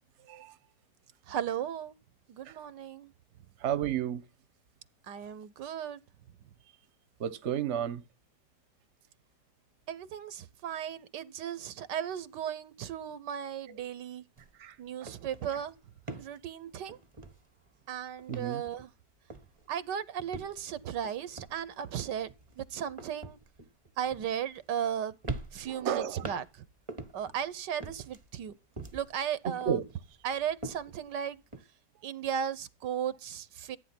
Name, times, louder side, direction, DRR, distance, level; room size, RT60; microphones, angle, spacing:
voice 1, 1.3-1.9 2.3-3.1 5.1-6.0 9.9-14.2 14.8-15.7 16.2-17.0 17.9-18.9 19.7-22.3 22.6-23.4 24.0-25.1 25.5-26.4 27.1-28.5 28.9-29.8 30.2-31.4 32.0-33.8, right 9 dB, 75° right, 1.5 m, -36 dB
voice 2, 3.6-4.2 7.2-8.0 14.6-14.7 18.3-18.6 25.7-26.2 29.4-29.8, right 9 dB, 45° right, 1.1 m, -31 dB
sound 1, 14.4-14.6 14.9-17.9 18.2-19.0 19.3-19.7 20.2-24.9 25.2-27.4 27.8-29.2 29.6-31.6, right 3 dB, 20° right, 1.0 m, -44 dB
14.0 x 9.1 x 5.9 m
omnidirectional pair, 1.9 m